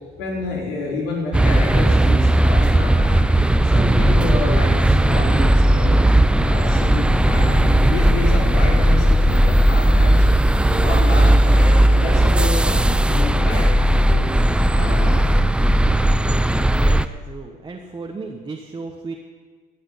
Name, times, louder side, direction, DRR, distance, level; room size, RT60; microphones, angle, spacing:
voice 1, 0.2-3.3 3.6-6.0 6.4-10.3 10.7-14.3 14.7-15.4, left 2 dB, 85° left, -2 dB, 4.8 m, -29 dB
sound 1, 1.3-17.1, right 1 dB, 5° right, 0.4 m, -16 dB
voice 2, 16.1-19.2, right 4 dB, 25° right, 2 dB, 1.3 m, -35 dB
15.5 x 6.5 x 9.6 m, 1.5 s
cardioid pair, 110°, 17 cm